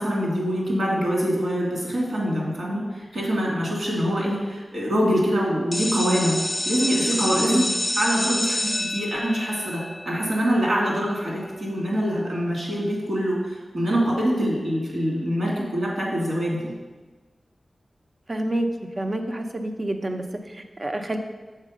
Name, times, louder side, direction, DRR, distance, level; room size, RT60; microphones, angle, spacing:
voice 1, 0.0-6.4 6.6-7.6 8.0-16.7, equal, 75° right, -3 dB, 2.6 m, -24 dB
sound 1, 5.7-11.4, left 1 dB, 10° left, 0.8 m, -28 dB
voice 2, 18.3-18.7 19.0-21.2, right 1 dB, 35° right, 5 dB, 0.7 m, -28 dB
6.6 x 4.5 x 6.4 m, 1.3 s
wide cardioid pair, 95°, 0 cm